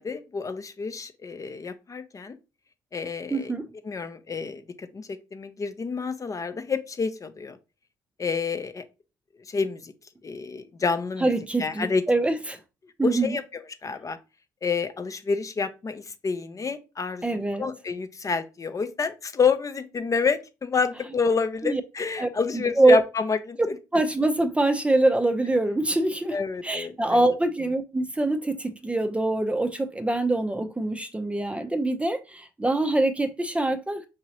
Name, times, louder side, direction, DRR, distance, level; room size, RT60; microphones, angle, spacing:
voice 1, 0.0-2.4 2.9-3.5 3.8-7.6 8.2-8.8 9.5-9.9 10.2-11.3 11.6-12.0 13.0-14.2 14.6-23.6 26.3-27.4, left 5 dB, 35° left, 0.6 m, -28 dB
voice 2, 3.3-3.7 11.2-12.6 13.0-13.4 17.2-17.7 21.6-21.8 22.2-23.0 23.6-26.4 26.6-34.1, right 2 dB, 10° right, 0.6 m, -24 dB
4.7 x 2.9 x 2.9 m
hypercardioid pair, 55°, 10 cm